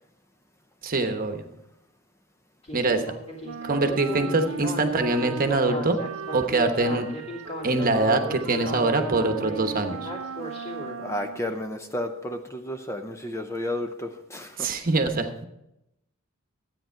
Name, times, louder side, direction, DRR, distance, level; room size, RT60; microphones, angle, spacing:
voice 1, 0.8-1.4 2.7-3.0 3.6-6.0 6.3-7.1 7.6-10.1 14.6-15.4, right 2 dB, 40° right, 6 dB, 1.1 m, -24 dB
Speech synthesizer, 2.6-11.0, right 1 dB, 30° left, 2.6 m, -36 dB
Wind instrument woodwind instrument, 3.4-11.6, right 4 dB, 65° right, 0.6 m, -38 dB
voice 2, 11.0-14.7, left 1 dB, 15° left, 5 dB, 0.7 m, -32 dB
13.0 x 9.0 x 4.6 m, 0.85 s
head